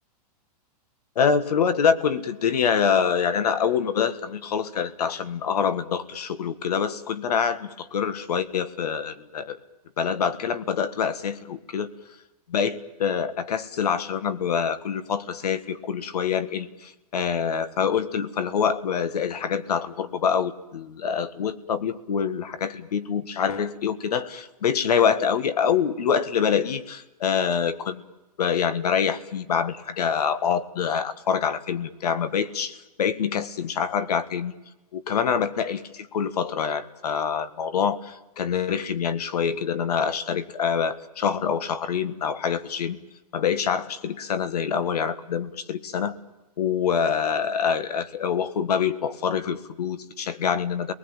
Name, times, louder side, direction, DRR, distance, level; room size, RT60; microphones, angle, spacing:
voice 1, 1.2-9.6 10.0-11.9 12.5-28.0 28.4-34.5 34.9-43.0 43.3-46.1 46.6-50.9, left 7 dB, 75° left, 14 dB, 1.8 m, -25 dB
29.0 x 20.0 x 9.0 m, 1.0 s
hypercardioid pair, 175°, 20 cm